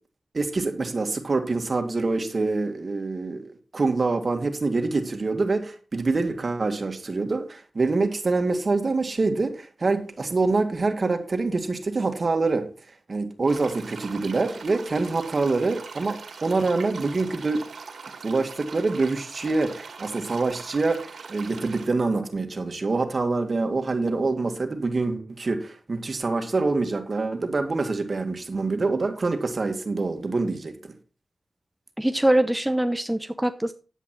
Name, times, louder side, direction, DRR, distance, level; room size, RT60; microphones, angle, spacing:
voice 1, 0.3-3.4 3.7-12.7 13.1-17.7 18.2-30.9, right 3 dB, 50° right, 6 dB, 2.0 m, -25 dB
sound 1, 13.4-21.9, right 5 dB, 80° right, 2.0 m, -41 dB
voice 2, 32.0-33.7, right 1 dB, 10° right, 9 dB, 0.7 m, -23 dB
10.0 x 8.4 x 4.5 m, 0.35 s
cardioid pair, 50°, 0 cm